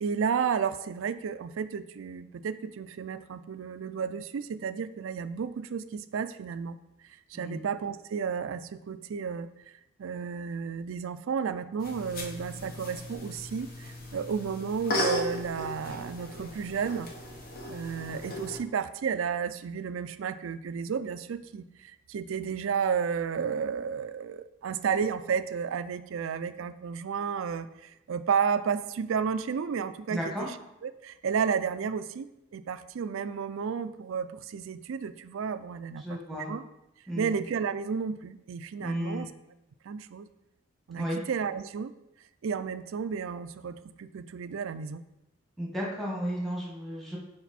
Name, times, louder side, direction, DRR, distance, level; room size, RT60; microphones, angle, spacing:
voice 1, 0.0-6.8 7.3-9.5 10.0-17.1 17.7-30.6 30.8-32.3 32.5-36.2 36.5-36.6 37.1-39.3 39.9-40.3 40.9-41.9 42.4-45.0, right 6 dB, 80° right, 12 dB, 0.4 m, -32 dB
sound 1, 11.8-18.6, left 1 dB, 45° left, 0.9 m, -36 dB
voice 2, 30.1-30.5 35.9-36.5 37.1-37.3 38.8-39.3 41.0-41.2 45.6-47.2, equal, ahead, -4 dB, 1.4 m, -33 dB
6.0 x 5.0 x 4.2 m, 0.90 s
head